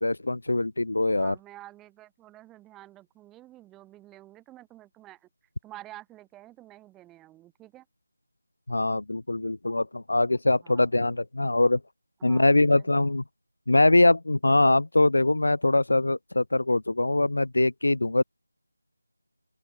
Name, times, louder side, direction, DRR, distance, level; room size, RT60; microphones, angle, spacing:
voice 1, 0.0-1.3 8.7-11.8 12.2-13.2 13.7-18.2, left 2 dB, 70° left, 0.5 m, -23 dB
voice 2, 1.1-5.3 5.6-7.9 10.6-11.1 12.2-12.9, right 15 dB, 5° right, 2.2 m, -49 dB
open air
figure-of-eight pair, 175°, 0 cm